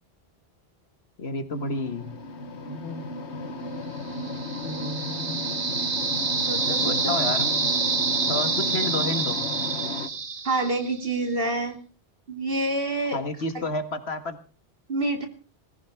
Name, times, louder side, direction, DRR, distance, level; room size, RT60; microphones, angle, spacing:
voice 1, 1.2-2.1 2.7-3.1 4.6-5.4 6.8-7.6 8.3-9.5 13.1-14.4, left 2 dB, 70° left, 9 dB, 1.8 m, -31 dB
sound 1, 1.5-10.1, left 2 dB, 90° left, 1.5 m, -34 dB
Horror Corps, 4.1-11.1, right 4 dB, 35° right, 1.1 m, -27 dB
voice 2, 6.5-7.2 10.4-11.8 12.3-13.2 13.5-13.6 14.9-15.3, right 2 dB, 55° right, 4 dB, 2.9 m, -27 dB
20.5 x 15.0 x 3.5 m, 0.37 s
omnidirectional pair, 1.1 m